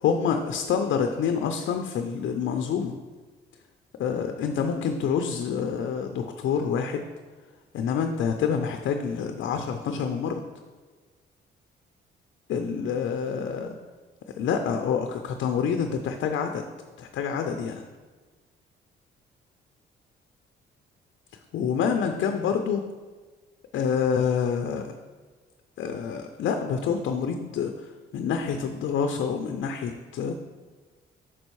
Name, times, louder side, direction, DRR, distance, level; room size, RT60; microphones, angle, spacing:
voice 1, 0.0-3.0 4.0-7.0 7.7-10.4 12.5-13.8 14.4-16.6 17.0-17.8 21.5-22.8 23.7-24.8 25.8-27.7 28.1-30.3, left 6 dB, 70° left, 5 dB, 0.6 m, -27 dB
6.0 x 5.3 x 4.6 m, 1.4 s
cardioid pair, 90°, 20 cm